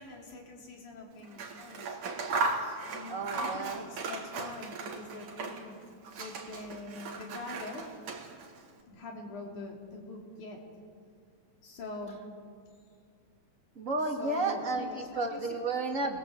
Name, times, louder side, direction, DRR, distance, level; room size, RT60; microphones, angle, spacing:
voice 1, 0.0-2.0 2.3-7.9 8.9-10.6 11.6-12.2 14.2-15.6, left 2 dB, 85° left, 0 dB, 5.0 m, -44 dB
Scissors, 1.2-5.8 6.0-8.6, right 3 dB, 75° right, 3.6 m, -37 dB
voice 2, 3.1-3.9 13.8-14.9 15.1-16.2, right 3 dB, 25° right, 2 dB, 2.5 m, -32 dB
29.5 x 21.0 x 8.0 m, 2.1 s
omnidirectional pair, 3.4 m